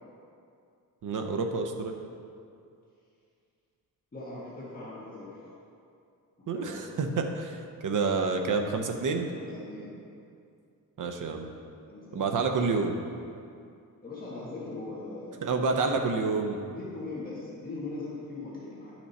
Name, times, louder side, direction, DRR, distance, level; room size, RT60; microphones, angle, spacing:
voice 1, 1.0-2.0 6.5-7.6 7.8-9.3 11.0-11.5 12.1-13.0 15.4-16.6, right 4 dB, 60° right, 4 dB, 0.8 m, -28 dB
voice 2, 4.1-5.5 6.5-7.0 9.3-10.0 11.9-12.4 14.0-15.6 16.6-18.9, left 2 dB, 25° left, -8 dB, 1.7 m, -40 dB
11.5 x 6.1 x 4.2 m, 2.4 s
wide cardioid pair, 140°, 35 cm